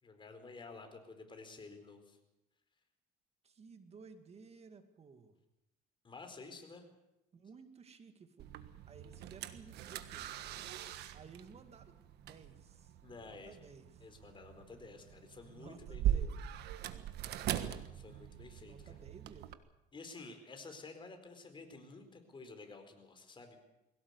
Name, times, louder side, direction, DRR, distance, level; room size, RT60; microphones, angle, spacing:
voice 1, 0.0-2.2 6.0-6.8 10.7-10.9 13.0-13.6 14.0-16.3 17.6-19.0 19.9-23.7, left 3 dB, 30° left, 6 dB, 4.5 m, -52 dB
voice 2, 3.4-5.3 7.3-8.5 8.9-10.5 10.8-12.9 13.2-14.1 15.4-16.3 18.6-19.6, right 5 dB, 40° right, 8 dB, 2.3 m, -56 dB
sound 1, 8.4-19.5, right 11 dB, 80° right, 1.5 m, -41 dB
21.5 x 17.5 x 8.3 m, 0.91 s
cardioid pair, 110°, 17 cm